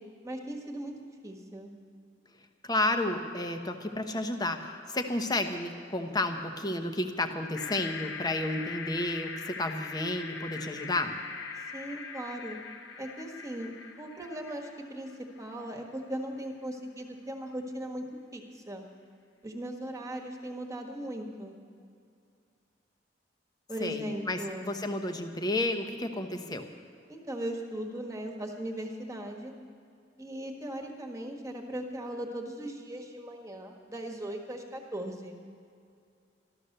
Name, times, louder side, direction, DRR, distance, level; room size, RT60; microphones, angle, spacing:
voice 1, 0.2-0.9 1.2-1.7 11.7-12.6 13.0-13.7 14.0-15.1 15.4-18.0 18.3-18.8 19.4-21.5 23.7-24.7 27.1-29.5 30.2-35.4, right 1 dB, 15° right, 1 dB, 1.6 m, -38 dB
voice 2, 2.6-11.1 23.8-26.6, left 2 dB, 20° left, 6 dB, 1.0 m, -31 dB
sound 1, 7.5-15.8, left 5 dB, 70° left, 1.1 m, -42 dB
13.5 x 13.0 x 6.7 m, 2.4 s
head